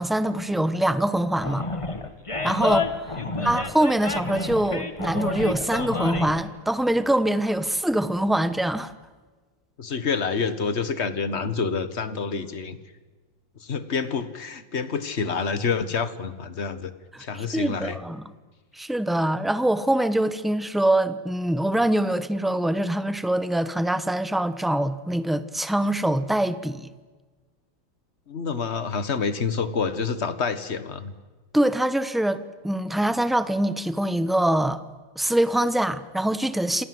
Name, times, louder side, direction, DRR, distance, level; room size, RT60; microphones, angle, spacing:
voice 1, 0.0-1.7 2.4-8.9 17.1-18.2 18.7-26.9 31.5-34.8 35.2-36.8, right 1 dB, ahead, 0.6 m, -24 dB
Animal, 1.4-6.4, left 3 dB, 15° left, 1.5 m, -29 dB
voice 2, 3.1-3.6 9.8-12.8 13.6-16.9 17.2-18.0 28.3-31.1, left 5 dB, 35° left, 1.7 m, -28 dB
27.5 x 27.5 x 7.9 m
omnidirectional pair, 2.1 m